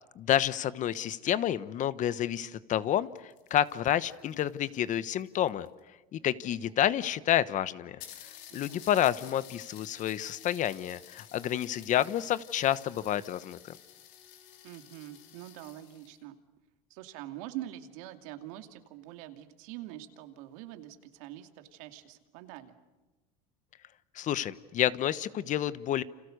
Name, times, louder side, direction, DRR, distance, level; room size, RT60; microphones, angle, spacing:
voice 1, 0.1-5.7 6.1-13.8 24.1-26.0, left 11 dB, 45° left, 15 dB, 1.1 m, -29 dB
sound 1, 3.0-5.8 6.7-6.8 7.0-7.1 7.4-7.5 8.0-16.2, left 11 dB, 70° left, 4.5 m, -52 dB
voice 2, 8.5-9.1 14.6-16.4 16.9-22.8, right 14 dB, 80° right, 6 dB, 2.6 m, -44 dB
29.5 x 27.5 x 6.7 m, 1.1 s
supercardioid pair, 115°, 18 cm